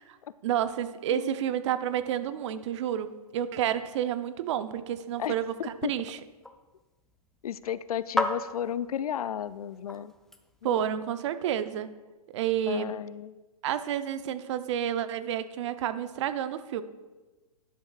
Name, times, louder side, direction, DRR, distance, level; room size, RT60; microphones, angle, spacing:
voice 1, 0.4-5.5 5.8-6.2 10.6-11.9 12.3-12.9 13.6-16.8, right 10 dB, 50° right, 12 dB, 0.7 m, -30 dB
sound 1, 5.1-10.9, left 1 dB, ahead, 0.5 m, -38 dB
voice 2, 5.2-5.9 7.4-10.1 10.6-10.8 12.7-13.4, left 9 dB, 70° left, 16 dB, 0.5 m, -34 dB
11.5 x 11.0 x 2.4 m, 1.2 s
hypercardioid pair, 120°, 19 cm